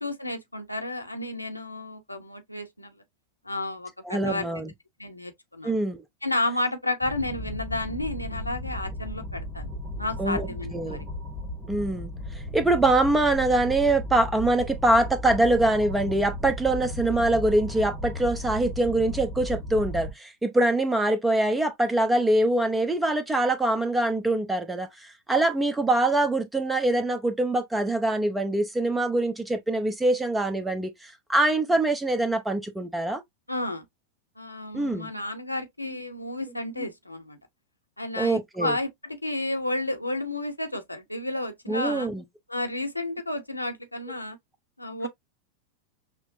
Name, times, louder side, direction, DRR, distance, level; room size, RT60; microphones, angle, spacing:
voice 1, 0.0-2.9 3.4-4.5 5.0-5.7 6.2-9.7 10.0-11.1 33.5-33.9 34.4-37.4 38.0-42.1 42.5-44.4 44.8-45.1, left 2 dB, 85° left, 0.8 m, -31 dB
voice 2, 4.0-4.7 5.6-6.0 10.2-11.0 11.7-12.1 12.5-33.2 34.7-35.1 36.8-36.9 38.2-38.8 41.7-42.2, right 2 dB, 10° right, 0.8 m, -24 dB
sound 1, 7.0-20.1, equal, 10° left, 1.3 m, -35 dB
5.8 x 2.1 x 2.7 m
figure-of-eight pair, 90°, 0 cm